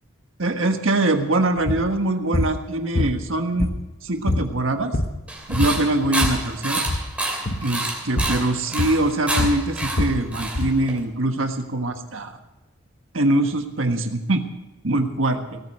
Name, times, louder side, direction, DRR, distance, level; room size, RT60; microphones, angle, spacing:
voice 1, 0.4-3.7 4.0-4.9 5.5-6.8 7.6-12.3 13.1-14.4 14.8-15.6, right 2 dB, 70° right, 6 dB, 1.5 m, -23 dB
sound 1, 1.6-1.9 2.3-2.6 2.9-4.0 4.3-4.5 4.8-5.2 5.5-6.4 6.8-7.1 7.4-7.7 8.2-8.4 8.8-10.8, left 1 dB, 45° left, 1.0 m, -24 dB
sound 2, 5.3-11.0, right 2 dB, 5° right, 2.7 m, -28 dB
17.5 x 9.2 x 6.5 m, 1.1 s
head